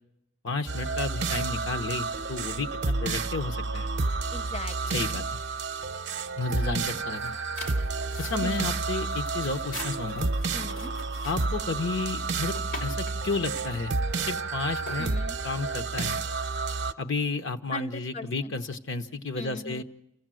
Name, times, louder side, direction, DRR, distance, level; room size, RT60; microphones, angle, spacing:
voice 1, 0.4-3.9 4.9-5.2 6.4-7.3 8.2-10.3 11.2-13.9 14.2-15.1 15.4-16.2 17.0-19.8, left 3 dB, 65° left, 8 dB, 1.0 m, -32 dB
sound 1, 0.7-16.9, right 3 dB, 55° right, 0.7 m, -30 dB
voice 2, 4.3-5.1 8.4-8.6 10.5-10.9 15.0-15.4 17.7-18.6 19.4-19.8, left 2 dB, 30° left, 12 dB, 0.7 m, -39 dB
sound 2, 6.7-15.8, left 2 dB, 80° left, 2.8 m, -45 dB
28.5 x 15.0 x 7.7 m, 0.86 s
head